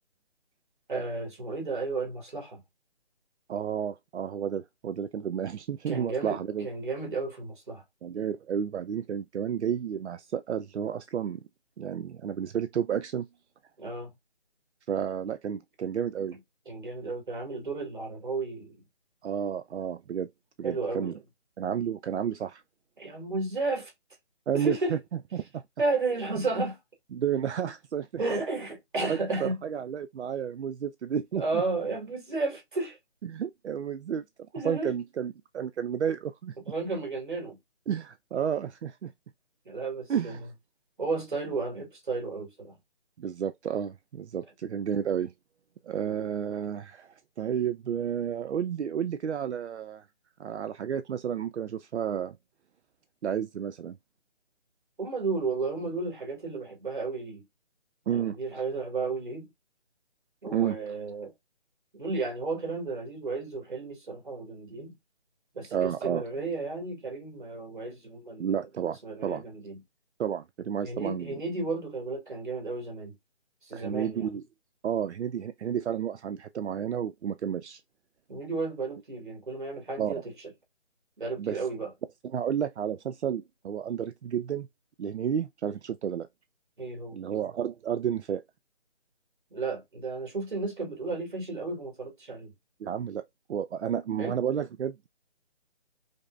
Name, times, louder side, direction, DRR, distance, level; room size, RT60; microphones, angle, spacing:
voice 1, 0.9-2.6 5.9-7.8 13.8-14.1 16.7-18.8 20.6-21.2 23.0-23.9 24.5-25.0 25.8-26.8 28.2-29.6 31.4-33.0 34.5-34.9 36.7-37.6 39.7-40.4 41.0-42.8 46.1-46.3 55.0-57.4 58.1-59.5 60.4-61.3 61.9-64.9 65.5-68.5 69.0-69.8 70.8-73.2 73.6-74.3 78.3-80.2 81.2-81.9 86.8-87.2 89.5-92.5 94.2-94.4, right 3 dB, 45° right, 1.7 m, -33 dB
voice 2, 3.5-6.7 8.0-11.4 11.8-13.3 14.9-16.4 19.2-20.3 20.6-21.1 21.6-22.6 24.5-25.0 25.3-25.6 27.1-28.1 29.1-31.6 33.2-34.2 34.6-36.5 37.9-39.1 40.1-40.5 43.2-45.3 45.8-50.1 50.4-52.4 53.2-54.0 58.1-58.4 60.5-60.8 65.7-66.2 68.4-69.4 70.2-71.3 73.7-74.4 74.8-77.8 80.0-80.2 81.4-81.6 82.3-84.7 85.0-86.3 87.1-88.4 92.8-93.2 93.5-95.1, right 8 dB, 80° right, 0.5 m, -31 dB
5.2 x 2.0 x 2.5 m
hypercardioid pair, 180°, 34 cm